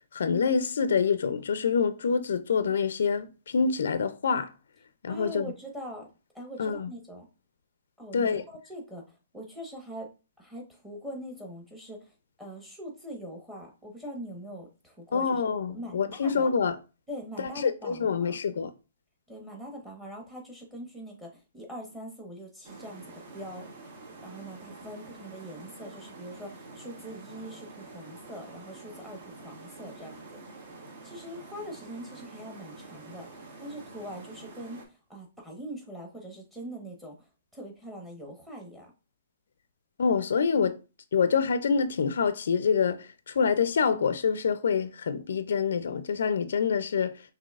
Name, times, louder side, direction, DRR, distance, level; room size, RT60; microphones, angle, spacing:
voice 1, 0.1-4.5 5.0-5.5 6.6-6.9 8.1-8.4 15.1-16.8 17.4-18.7 40.0-40.8 41.1-47.2, left 6 dB, 70° left, 0.5 m, -26 dB
voice 2, 5.1-6.1 6.3-7.3 8.0-10.1 10.4-12.1 12.4-15.3 15.7-16.5 17.1-18.4 19.3-23.7 24.2-30.4 31.0-37.2 37.5-38.9, equal, 5° right, 1.2 m, -42 dB
sound 1, 22.6-34.9, right 3 dB, 40° right, 1.3 m, -47 dB
6.0 x 2.7 x 2.4 m
hypercardioid pair, 155°, 0 cm